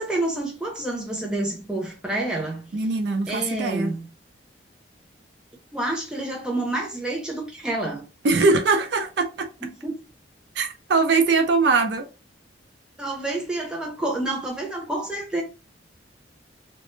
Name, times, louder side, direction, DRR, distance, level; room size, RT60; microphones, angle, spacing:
voice 1, 0.0-2.7 3.3-4.1 5.7-8.0 9.6-9.9 13.0-15.4, right 2 dB, 5° right, 0.5 m, -28 dB
voice 2, 2.7-3.9 8.2-9.5 10.6-12.1, right 4 dB, 65° right, 0.4 m, -21 dB
2.1 x 2.0 x 3.1 m
head